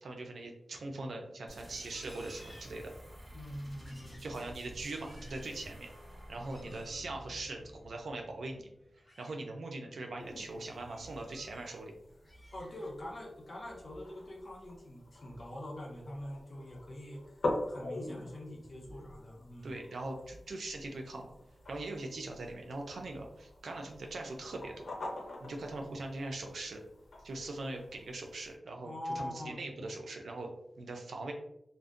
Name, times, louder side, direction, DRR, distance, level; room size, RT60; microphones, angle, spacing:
voice 1, 0.0-2.9 4.2-5.9 6.3-8.7 9.2-11.9 19.6-21.3 21.7-24.8 25.4-26.8 27.2-30.5 30.8-31.3, right 2 dB, 85° right, 2 dB, 0.4 m, -41 dB
Livestock farm animals working animals, 1.5-3.2 3.7-4.3 4.8-5.7 6.4-7.1 8.8-9.4 9.8-10.1 10.5-11.7 12.1-13.1 13.5-13.9 14.3-14.7, equal, 20° left, 0.9 m, -59 dB
sound 1, 1.5-9.0, equal, 35° right, 1.1 m, -51 dB
voice 2, 3.3-4.2 12.5-19.8 28.8-29.9, left 1 dB, 45° left, -2 dB, 0.7 m, -44 dB
sound 2, 10.2-28.6, left 2 dB, 80° left, 0.6 m, -45 dB
2.5 x 2.1 x 2.4 m, 0.79 s
wide cardioid pair, 105°, 0 cm